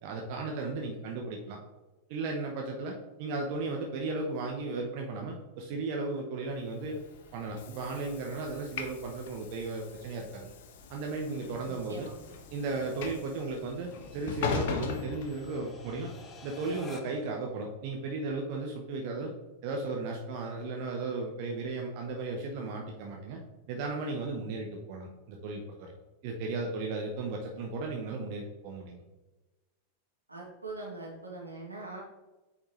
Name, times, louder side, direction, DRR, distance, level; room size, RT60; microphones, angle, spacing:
voice 1, 0.0-1.6 2.1-7.0 7.3-10.5 10.9-12.1 12.5-16.1 16.4-19.3 19.6-23.4 23.7-25.9 26.2-29.0, right 3 dB, 45° right, 1 dB, 1.0 m, -35 dB
Train / Sliding door, 6.7-16.0, left 5 dB, 55° left, 0.8 m, -40 dB
sound 1, 7.2-17.4, left 4 dB, 25° left, 0.9 m, -54 dB
voice 2, 11.6-12.1 30.3-32.0, right 3 dB, 85° right, -3 dB, 2.2 m, -42 dB
8.6 x 4.9 x 3.2 m, 1.1 s
figure-of-eight pair, 90°, 0 cm